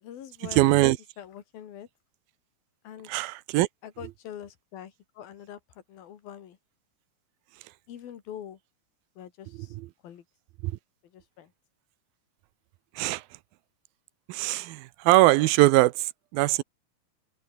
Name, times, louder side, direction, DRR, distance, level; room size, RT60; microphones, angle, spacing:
voice 1, 0.0-1.9 2.8-3.1 3.8-6.6 7.9-8.6 9.2-9.8 10.0-10.2 11.0-11.5, left 10 dB, 80° left, 4.0 m, -44 dB
voice 2, 0.5-1.0 3.1-3.7 9.8-9.9 10.6-10.7 13.0-13.2 14.3-16.6, right 19 dB, 85° right, 2.5 m, -22 dB
open air
omnidirectional pair, 4.1 m